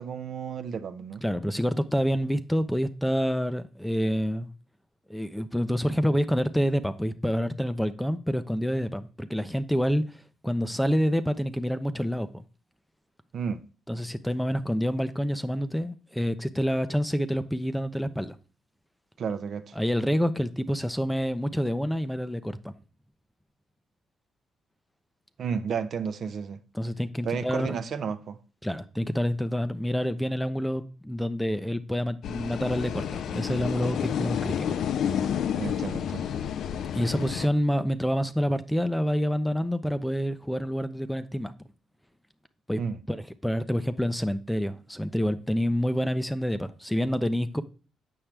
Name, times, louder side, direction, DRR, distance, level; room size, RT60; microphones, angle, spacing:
voice 1, 0.0-1.2 13.3-13.6 19.2-19.8 25.4-26.6 27.2-28.4 35.6-36.3 42.8-43.0, right 6 dB, 60° right, 0.7 m, -32 dB
voice 2, 1.2-4.5 5.1-10.0 10.4-12.4 13.9-18.4 19.8-22.7 26.7-27.7 28.6-34.7 36.9-41.5 42.7-42.8 43.1-47.6, equal, 5° left, 0.6 m, -27 dB
sound 1, 32.2-37.5, left 9 dB, 70° left, 0.4 m, -30 dB
7.3 x 5.8 x 3.3 m
cardioid pair, 90°, 0 cm